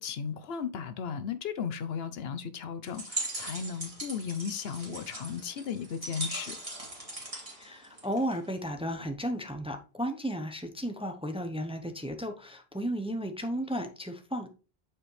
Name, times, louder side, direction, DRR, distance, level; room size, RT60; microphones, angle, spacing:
voice 1, 0.0-6.6, left 7 dB, 75° left, 0.9 m, -35 dB
sound 1, 2.9-8.5, right 2 dB, 35° right, 2.4 m, -39 dB
voice 2, 7.6-14.5, equal, 5° right, 0.7 m, -34 dB
8.7 x 4.9 x 3.2 m
omnidirectional pair, 1.1 m